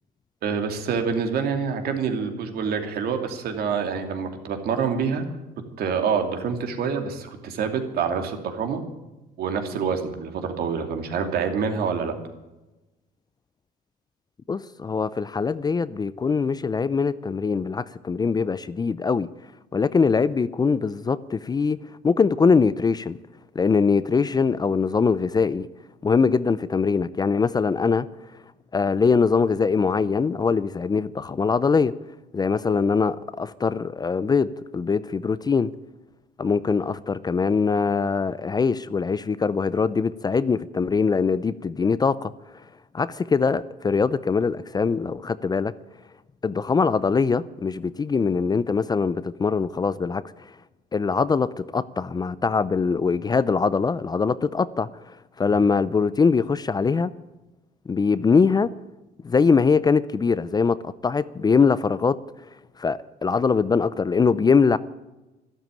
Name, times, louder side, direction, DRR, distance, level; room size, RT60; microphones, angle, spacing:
voice 1, 0.4-5.3 5.8-8.8 9.4-12.1, right 6 dB, 65° right, 2.7 m, -26 dB
voice 2, 14.5-19.3 19.7-21.8 22.0-23.2 23.6-25.7 26.0-28.1 28.7-31.9 32.3-35.7 36.4-42.3 42.9-45.7 46.4-50.2 50.9-54.9 55.4-57.1 57.9-58.7 59.2-62.2 62.8-64.8, left 5 dB, 25° left, 0.5 m, -22 dB
13.0 x 12.5 x 9.0 m
cardioid pair, 110°, 17 cm